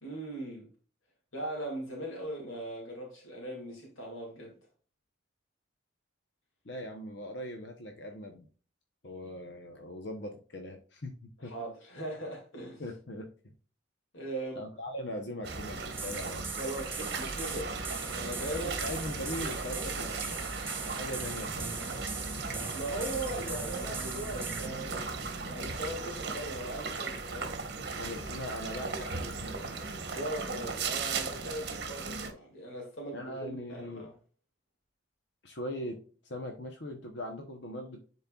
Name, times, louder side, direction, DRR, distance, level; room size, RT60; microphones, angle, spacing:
voice 1, 0.0-0.7 1.3-4.5 11.4-12.8 14.1-14.6 16.6-17.7 18.1-18.7 22.7-25.1 25.4-27.6 30.1-34.1, right 1 dB, 85° left, 2.4 m, -39 dB
voice 2, 6.6-8.4 9.0-11.5 12.8-13.3 14.5-16.5 18.5-20.4 20.7-22.0 27.9-29.8 33.1-34.1 35.4-36.0 36.2-38.0, left 1 dB, 60° left, 0.9 m, -40 dB
sound 1, 15.4-32.3, right 4 dB, 55° right, 1.4 m, -37 dB
sound 2, 15.9-24.7, right 5 dB, 10° right, 0.3 m, -42 dB
10.5 x 4.3 x 2.4 m
head